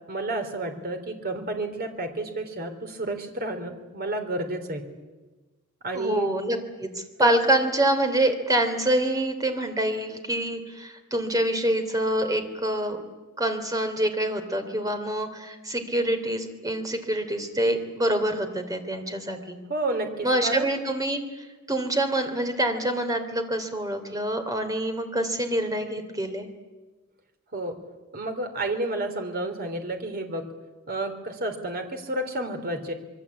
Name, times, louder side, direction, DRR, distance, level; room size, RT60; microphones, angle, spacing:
voice 1, 0.1-4.9 5.8-6.3 7.2-7.6 19.7-20.7 27.5-27.8 28.1-30.5 30.9-32.9, right 2 dB, 45° right, 6 dB, 3.5 m, -31 dB
voice 2, 5.9-13.0 13.4-19.6 20.2-26.5, right 1 dB, 15° right, 6 dB, 3.1 m, -26 dB
25.5 x 23.0 x 8.5 m, 1.2 s
head